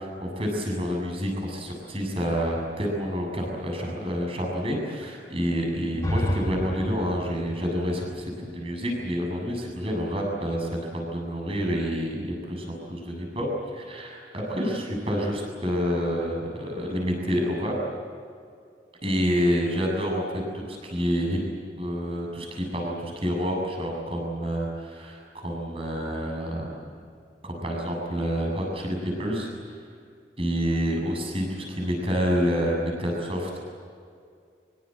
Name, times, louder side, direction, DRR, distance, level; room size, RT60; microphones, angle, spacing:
voice 1, 0.0-17.8 19.0-21.4 21.8-26.9 27.4-29.5 30.4-33.6, equal, 30° right, 0 dB, 7.6 m, -28 dB
sound 1, 5.9-9.8, equal, 15° left, 4.9 m, -32 dB
25.0 x 24.5 x 7.8 m, 2.3 s
head